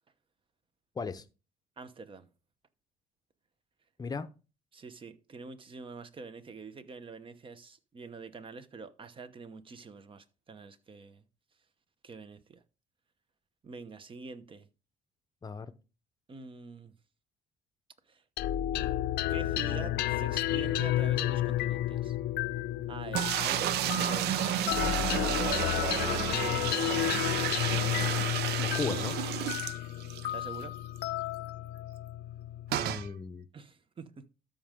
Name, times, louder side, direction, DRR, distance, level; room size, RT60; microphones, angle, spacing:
voice 1, 1.8-2.3 4.7-11.2 12.0-12.6 13.6-14.7 16.3-16.9 18.1-18.2 18.7-19.0 19.3-22.2 22.9-25.0 25.2-27.5 30.3-30.8 33.5-34.3, right 4 dB, 30° right, 0.9 m, -46 dB
voice 2, 4.0-4.3 15.4-15.7 28.6-29.2 32.8-33.5, left 5 dB, 25° left, 0.7 m, -36 dB
sound 1, 18.4-33.1, left 13 dB, 70° left, 0.6 m, -32 dB
sound 2, 23.1-30.3 30.6-30.7 31.0-31.1 32.7-33.1, right 12 dB, 75° right, 0.5 m, -31 dB
13.0 x 5.2 x 3.6 m
cardioid pair, 110°, 17 cm